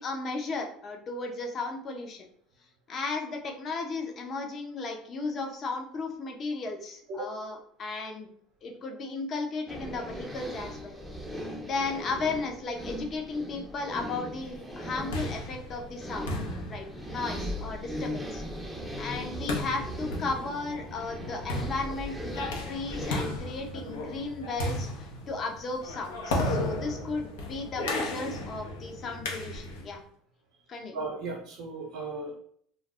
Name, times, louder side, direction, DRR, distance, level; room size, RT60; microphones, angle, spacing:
voice 1, 0.0-2.3 2.9-8.3 8.6-11.0 11.3-16.3 16.7-30.0 30.7-31.0, left 3 dB, 40° left, 3 dB, 0.6 m, -35 dB
sound 1, 9.7-23.3, equal, 5° right, 0.5 m, -38 dB
sound 2, 14.8-29.9, left 1 dB, 85° left, 0.6 m, -35 dB
voice 2, 30.9-32.4, right 3 dB, 65° right, 0 dB, 0.6 m, -36 dB
2.2 x 2.0 x 3.4 m, 0.62 s
supercardioid pair, 90°, 0 cm